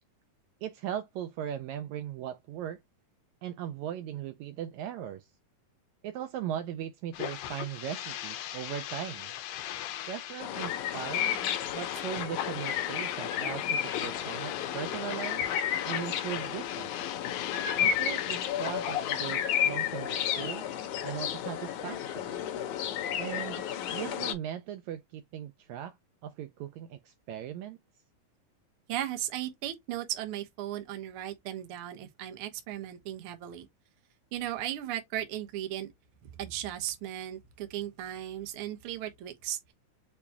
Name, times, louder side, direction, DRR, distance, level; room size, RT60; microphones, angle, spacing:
voice 1, 0.6-2.8 3.4-5.3 6.0-9.3 10.1-11.4 11.7-15.4 15.8-16.9 17.8-20.7 21.0-22.3 23.2-23.7 23.9-26.0 26.2-27.8, right 10 dB, 90° right, 1.6 m, -38 dB
sound 1, 7.1-19.4, left 11 dB, 90° left, 2.5 m, -38 dB
sound 2, 10.4-24.3, left 9 dB, 70° left, 2.1 m, -32 dB
voice 2, 28.9-33.7 34.3-35.9 36.2-39.7, right 12 dB, 70° right, 1.3 m, -36 dB
6.8 x 2.3 x 2.8 m
omnidirectional pair, 3.9 m